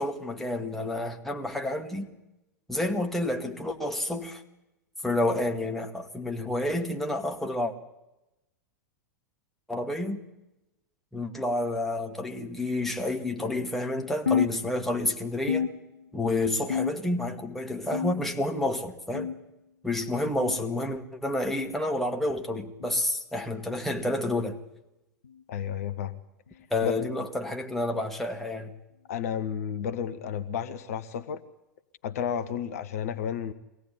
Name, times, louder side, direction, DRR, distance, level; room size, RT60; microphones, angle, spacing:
voice 1, 0.0-2.1 2.7-4.4 5.0-7.7 9.7-10.2 11.1-15.7 16.1-19.3 19.8-24.6 26.7-28.7, left 1 dB, 5° left, 2 dB, 2.2 m, -29 dB
sound 1, 14.3-15.1 15.5-16.3 16.7-17.3 17.9-18.5 19.1-19.5 20.4-20.6 21.6-21.8 22.8-23.0 24.0-24.2 25.2-25.4 26.5-26.6 27.7-27.8 28.9-29.0, left 7 dB, 75° left, 0.8 m, -31 dB
voice 2, 25.5-26.2 26.8-26.9 29.1-31.4 32.0-33.5, left 8 dB, 55° left, 12 dB, 1.1 m, -32 dB
24.0 x 17.5 x 9.8 m, 0.96 s
figure-of-eight pair, 90°, 10 cm